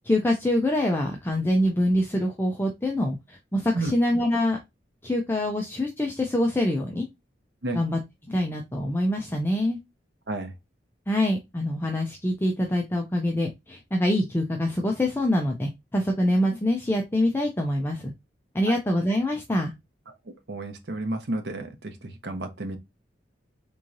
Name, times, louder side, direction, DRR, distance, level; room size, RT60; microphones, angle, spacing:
voice 1, 0.0-4.6 5.0-7.1 7.7-8.0 8.3-9.8 11.1-18.1 18.5-19.7, left 1 dB, 10° left, 0.4 m, -25 dB
voice 2, 20.5-22.8, right 2 dB, 70° right, 0.7 m, -31 dB
3.6 x 3.1 x 2.6 m
head